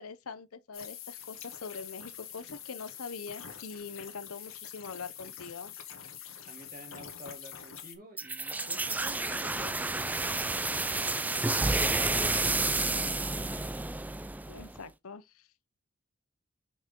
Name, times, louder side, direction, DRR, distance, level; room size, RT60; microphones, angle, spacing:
voice 1, 0.0-5.7 14.5-15.5, left 5 dB, 90° left, 0.8 m, -43 dB
sound 1, 0.7-8.0, left 9 dB, 70° left, 1.9 m, -45 dB
voice 2, 6.5-12.8, right 1 dB, 40° right, 2.7 m, -50 dB
sound 2, 8.2-14.8, right 2 dB, 10° right, 0.3 m, -30 dB
6.3 x 6.1 x 3.7 m
head